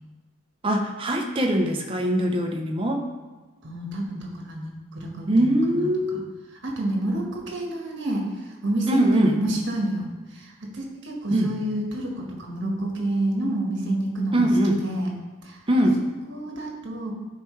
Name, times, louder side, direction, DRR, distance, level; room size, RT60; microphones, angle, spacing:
voice 1, 0.6-3.0 5.3-6.2 8.9-9.3 11.3-11.5 14.3-14.8 15.7-16.0, right 1 dB, 25° right, 2 dB, 0.8 m, -22 dB
voice 2, 3.6-6.2 6.5-15.1 15.4-15.6 16.0-17.1, right 1 dB, 55° right, -1 dB, 1.4 m, -29 dB
10.5 x 4.5 x 3.2 m, 1.3 s
head